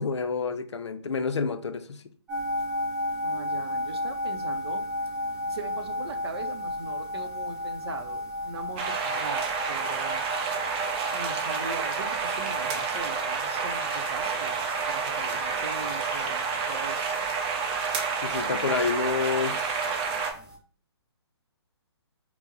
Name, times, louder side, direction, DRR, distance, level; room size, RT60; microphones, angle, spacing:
voice 1, 0.0-2.0 18.2-20.0, left 5 dB, 85° left, 0.4 m, -29 dB
sound 1, 2.3-20.6, left 1 dB, 5° right, 0.8 m, -35 dB
voice 2, 3.2-4.9 5.5-10.6 11.1-17.3, right 4 dB, 65° right, 0.6 m, -40 dB
sound 2, 8.8-20.3, right 5 dB, 20° right, 0.4 m, -29 dB
4.5 x 2.0 x 2.6 m
hypercardioid pair, 145°, 14 cm